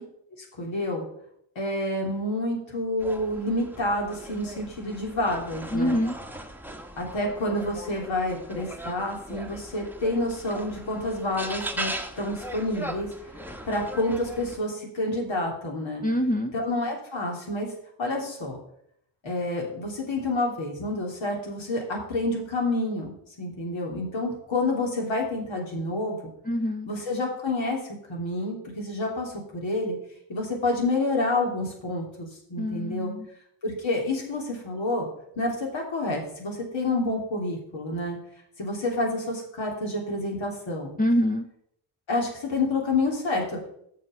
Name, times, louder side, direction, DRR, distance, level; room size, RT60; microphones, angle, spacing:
voice 1, 0.6-1.1 1.5-6.0 7.0-11.9 12.2-13.1 13.7-16.0 16.5-17.7 18.0-18.6 19.2-26.2 26.9-27.8 28.1-29.9 30.3-33.1 33.6-35.1 35.4-38.2 38.6-40.9 42.1-43.6, left 2 dB, 65° left, -1 dB, 3.3 m, -28 dB
sound 1, 3.0-14.6, right 1 dB, 5° right, 1.2 m, -39 dB
voice 2, 5.7-6.2 16.0-16.5 26.5-26.9 32.6-33.3 41.0-41.5, equal, 15° left, 4 dB, 0.9 m, -25 dB
6.8 x 6.4 x 6.9 m, 0.70 s
cardioid pair, 60°, 50 cm